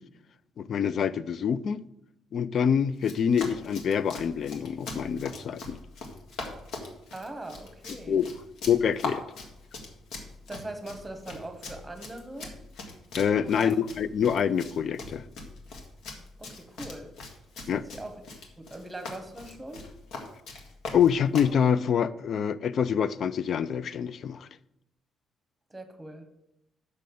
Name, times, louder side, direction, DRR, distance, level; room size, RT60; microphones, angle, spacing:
voice 1, 0.6-1.8 2.3-5.8 8.1-8.3 8.6-9.2 13.2-15.2 17.7-17.8 20.9-24.5, left 7 dB, 45° left, 0.4 m, -26 dB
Run, 3.0-21.6, left 3 dB, 75° left, 1.8 m, -41 dB
voice 2, 7.1-8.2 10.5-12.5 13.4-13.8 16.4-17.1 17.6-18.2 18.6-19.8 25.7-26.2, right 1 dB, 10° right, 1.2 m, -41 dB
6.5 x 6.3 x 6.9 m
cardioid pair, 155°, 0 cm